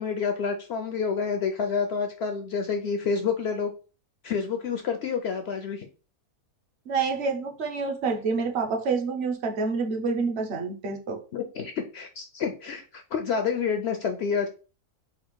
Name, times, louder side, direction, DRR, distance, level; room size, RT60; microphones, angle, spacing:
voice 1, 0.0-3.7 4.2-5.9 11.3-14.5, left 6 dB, 70° left, 6 dB, 0.6 m, -28 dB
voice 2, 6.9-11.2, right 4 dB, 55° right, 4 dB, 0.8 m, -28 dB
4.2 x 2.4 x 4.5 m, 0.35 s
omnidirectional pair, 1.6 m